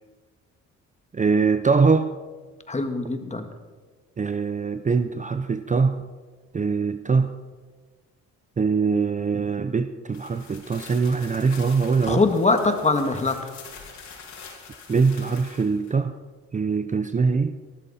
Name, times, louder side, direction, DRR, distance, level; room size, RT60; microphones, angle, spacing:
voice 1, 1.1-2.1 4.2-6.0 6.5-7.3 8.6-12.2 14.9-16.2 16.5-17.6, right 5 dB, 25° right, 11 dB, 0.7 m, -22 dB
voice 2, 2.7-3.4 12.1-13.5, left 3 dB, 25° left, 6 dB, 1.8 m, -22 dB
sound 1, 10.1-15.9, left 5 dB, 65° left, 4.7 m, -45 dB
19.0 x 13.5 x 4.3 m, 1.4 s
cardioid pair, 90°, 30 cm